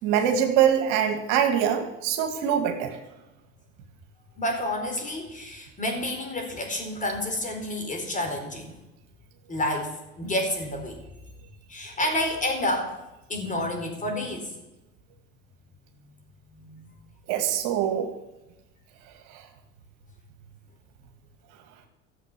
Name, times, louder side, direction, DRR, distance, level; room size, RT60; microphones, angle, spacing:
voice 1, 0.0-3.0 17.3-18.1 19.3-19.4, right 9 dB, 70° right, 5 dB, 2.1 m, -23 dB
voice 2, 4.4-8.8 9.5-11.0 11.7-13.0 13.3-14.5 16.5-17.0, left 1 dB, 25° left, 2 dB, 4.5 m, -29 dB
14.5 x 7.6 x 7.0 m, 0.98 s
supercardioid pair, 95°, 33 cm